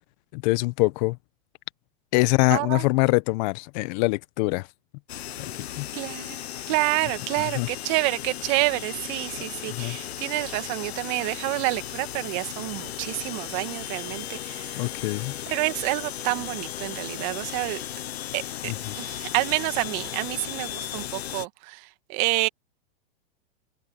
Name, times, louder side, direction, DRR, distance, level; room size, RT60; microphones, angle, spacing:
voice 1, 0.3-1.2 2.1-4.7 5.4-5.5 5.8-5.9 7.4-7.7 9.7-10.0 14.8-15.4 18.6-18.9, left 24 dB, 45° left, 1.3 m, -24 dB
voice 2, 2.5-2.8 5.9-6.4 6.7-14.8 15.5-17.8 18.3-22.5, right 26 dB, 45° right, 2.2 m, -28 dB
Washing Machine Spin, 5.1-21.5, left 11 dB, 80° left, 1.1 m, -36 dB
hypercardioid pair, 125°, 31 cm